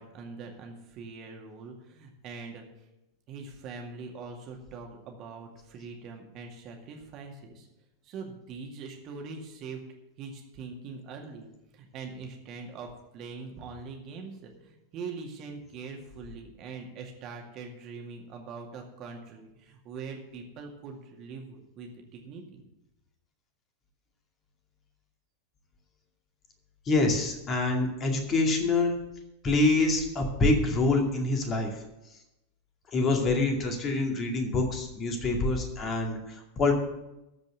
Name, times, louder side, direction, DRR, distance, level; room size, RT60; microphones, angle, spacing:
voice 1, 0.0-2.6 3.3-7.7 8.0-9.8 10.2-22.6, right 4 dB, 35° right, 1 dB, 2.2 m, -42 dB
voice 2, 26.9-29.0 29.4-31.7 32.9-36.7, left 2 dB, 25° left, 3 dB, 2.3 m, -26 dB
14.0 x 5.3 x 8.0 m, 0.92 s
figure-of-eight pair, 90°, 0 cm